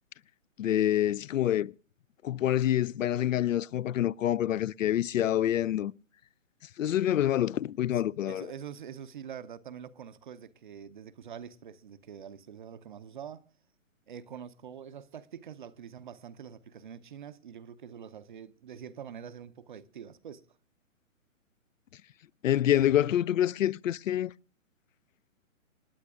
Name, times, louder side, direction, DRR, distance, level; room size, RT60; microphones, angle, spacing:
voice 1, 0.6-1.7 2.2-5.9 6.8-8.5 22.4-24.3, left 12 dB, 70° left, 0.5 m, -27 dB
voice 2, 7.9-13.5 14.1-20.5, right 8 dB, 35° right, 0.6 m, -45 dB
27.5 x 9.7 x 2.4 m
hypercardioid pair, 150°, 41 cm